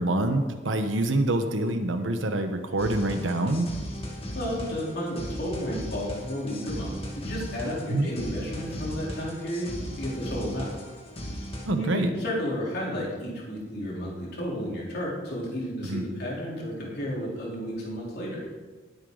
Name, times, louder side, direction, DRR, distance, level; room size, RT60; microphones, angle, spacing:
voice 1, 0.0-3.7 7.9-8.1 11.6-12.1 15.9-16.0, right 1 dB, 85° right, 7 dB, 1.2 m, -26 dB
sound 1, 2.8-11.7, equal, 30° left, 2.1 m, -37 dB
voice 2, 4.3-9.7 10.0-10.7 11.7-18.5, equal, 60° left, -4 dB, 3.9 m, -32 dB
20.0 x 8.4 x 4.0 m, 1.4 s
head